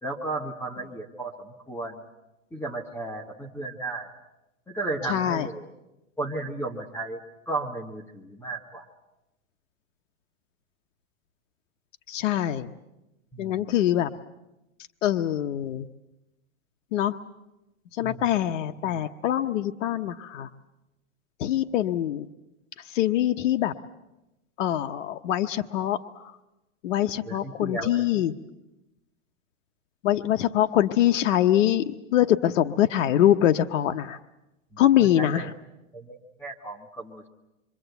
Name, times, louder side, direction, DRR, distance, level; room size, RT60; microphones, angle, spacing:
voice 1, 0.0-2.0 2.5-4.1 4.7-5.7 6.2-7.2 7.5-8.8 13.3-13.7 18.0-18.3 27.3-27.9 34.7-34.8 35.2-35.5 35.9-37.3, right 2 dB, 5° left, 4 dB, 1.4 m, -34 dB
voice 2, 5.1-5.5 12.1-12.7 13.4-14.1 15.0-15.9 16.9-17.2 17.9-20.5 21.4-22.3 22.8-23.7 24.6-26.0 26.8-28.3 30.0-34.2 34.8-35.5, left 12 dB, 70° left, 7 dB, 1.0 m, -24 dB
26.5 x 24.5 x 8.1 m, 0.95 s
supercardioid pair, 155°, 39 cm